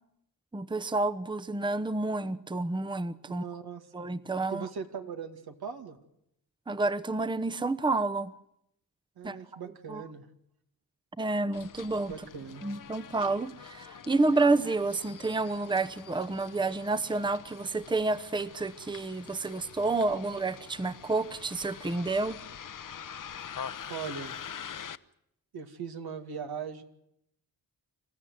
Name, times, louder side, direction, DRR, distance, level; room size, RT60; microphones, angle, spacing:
voice 1, 0.5-3.4 3.9-4.6 6.7-8.3 9.2-9.4 9.9-10.0 11.2-12.1 12.6-22.4, right 3 dB, 10° right, 13 dB, 0.9 m, -29 dB
voice 2, 3.3-3.8 4.5-6.0 9.2-10.3 12.1-12.7 23.9-24.4 25.5-26.8, right 6 dB, 80° right, 6 dB, 2.3 m, -39 dB
Bus, 11.5-25.0, left 8 dB, 55° left, 0.9 m, -45 dB
27.0 x 14.5 x 9.4 m, 0.76 s
cardioid pair, 70°, 37 cm